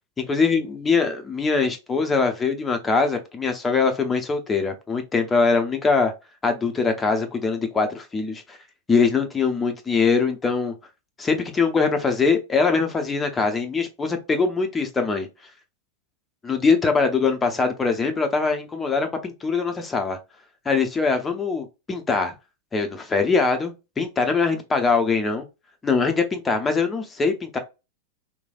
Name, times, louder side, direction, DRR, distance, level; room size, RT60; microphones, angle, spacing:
voice 1, 0.2-6.1 6.4-8.6 8.9-10.7 11.2-15.3 16.4-20.2 20.7-22.3 22.7-25.5 25.8-27.6, left 4 dB, 15° left, 0.7 m, -22 dB
3.1 x 2.2 x 2.3 m
figure-of-eight pair, 90°, 0 cm